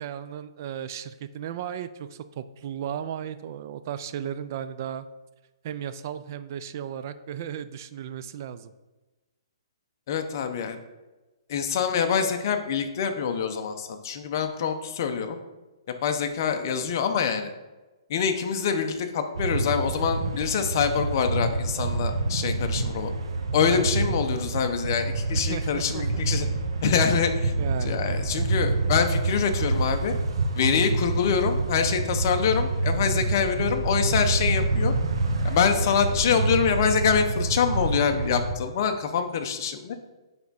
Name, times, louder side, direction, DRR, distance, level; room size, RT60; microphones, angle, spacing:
voice 1, 0.0-5.1 5.6-8.7 23.6-23.9 25.5-26.2 26.9-27.1 27.6-28.0, right 9 dB, 35° right, 12 dB, 0.4 m, -35 dB
voice 2, 10.1-10.8 11.5-15.4 16.0-17.5 18.1-23.1 23.5-26.5 26.8-27.5 27.8-30.1 30.5-34.9 35.4-40.0, left 7 dB, 40° left, 6 dB, 0.8 m, -25 dB
sound 1, 19.4-38.6, right 3 dB, 75° right, 1.0 m, -27 dB
9.6 x 3.5 x 4.1 m, 1.1 s
hypercardioid pair, 165°, 3 cm